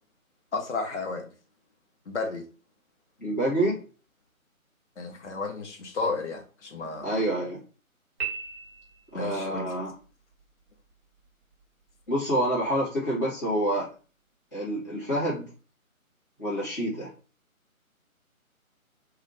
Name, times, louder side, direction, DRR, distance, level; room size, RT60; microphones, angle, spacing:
voice 1, 0.5-1.3 2.1-2.4 5.0-7.1 9.1-9.7, left 3 dB, 55° left, 2 dB, 0.7 m, -32 dB
voice 2, 3.2-3.8 7.0-7.6 9.1-9.9 12.1-13.9 14.5-15.4 16.4-17.1, right 1 dB, 15° left, -12 dB, 0.7 m, -27 dB
Piano, 8.2-9.3, right 7 dB, 40° right, 1.3 m, -36 dB
2.5 x 2.4 x 3.1 m, 0.36 s
figure-of-eight pair, 150°, 43 cm